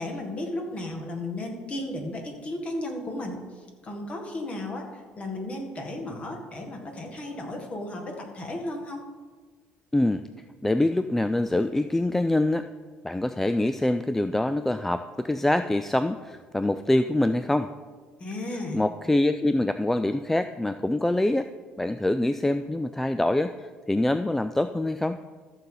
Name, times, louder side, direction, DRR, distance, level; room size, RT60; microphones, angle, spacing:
voice 1, 0.0-9.0 18.2-18.9, left 1 dB, 35° left, 2 dB, 1.9 m, -34 dB
voice 2, 9.9-10.2 10.6-12.7 13.0-17.7 18.7-21.5 21.8-25.2, left 1 dB, 10° left, 10 dB, 0.3 m, -25 dB
14.0 x 6.8 x 4.0 m, 1.4 s
cardioid pair, 115°, 4 cm